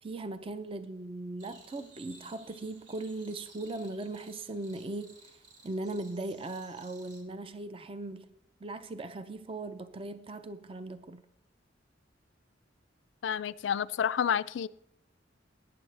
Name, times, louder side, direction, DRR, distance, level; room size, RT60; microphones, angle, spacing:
voice 1, 0.0-5.4 5.6-8.3 8.6-11.2, right 2 dB, 30° right, 0.5 m, -39 dB
sound 1, 1.4-7.2, right 3 dB, 70° right, 2.4 m, -57 dB
voice 2, 13.2-14.7, left 8 dB, 70° left, 0.4 m, -29 dB
18.0 x 9.7 x 3.3 m
head